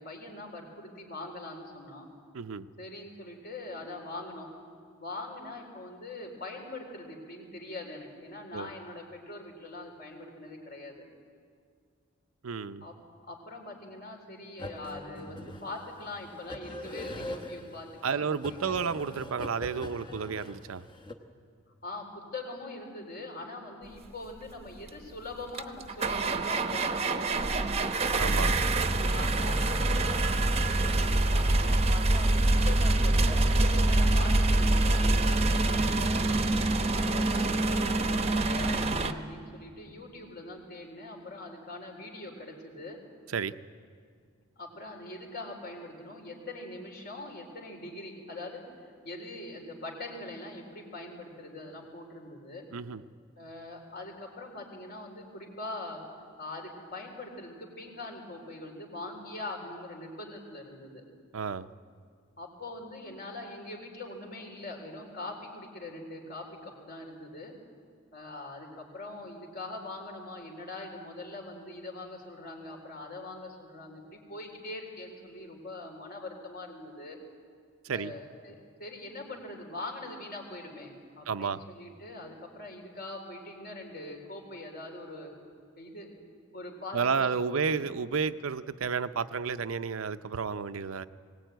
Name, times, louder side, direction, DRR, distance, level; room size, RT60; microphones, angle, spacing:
voice 1, 0.0-2.1 2.8-4.5 5.0-11.1 12.8-12.9 13.2-18.8 21.8-27.7 29.1-36.3 36.9-43.0 44.6-48.6 49.0-52.6 53.4-56.0 56.4-61.0 62.4-67.5 68.1-74.0 74.3-77.2 77.9-85.3 85.8-86.1 86.5-87.9, left 2 dB, 45° left, 2 dB, 3.9 m, -42 dB
voice 2, 2.3-2.7 8.5-8.7 12.4-12.8 18.0-20.8 28.2-28.5 43.3-43.5 52.7-53.0 61.3-61.7 77.8-78.1 81.3-81.6 86.9-91.0, right 5 dB, 80° right, 12 dB, 0.6 m, -31 dB
sound 1, 14.6-21.1, left 1 dB, 20° left, 1.2 m, -42 dB
sound 2, 24.9-25.0 25.5-39.1, right 2 dB, 30° right, 0.9 m, -25 dB
21.0 x 18.5 x 9.1 m, 2.1 s
head